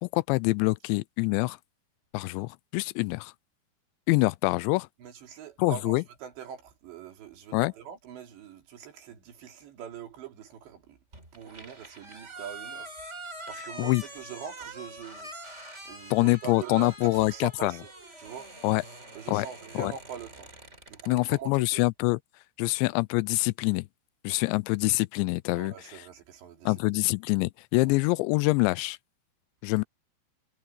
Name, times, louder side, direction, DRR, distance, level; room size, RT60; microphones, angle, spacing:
voice 1, 0.0-1.6 2.1-3.3 4.1-4.9 5.6-6.0 7.5-7.7 13.8-14.0 16.1-17.8 18.6-18.8 19.3-19.5 19.8-19.9 21.1-22.2 22.6-23.9 24.2-26.0 26.7-29.0 29.6-29.8, left 23 dB, 85° left, 2.8 m, -25 dB
voice 2, 5.0-11.0 11.3-12.9 13.5-17.9 18.2-18.5 19.1-20.5 20.9-21.8 25.5-26.7 27.8-28.0, right 8 dB, 75° right, 5.3 m, -43 dB
sound 1, 11.1-21.4, right 1 dB, 15° right, 4.3 m, -45 dB
omnidirectional pair, 5.1 m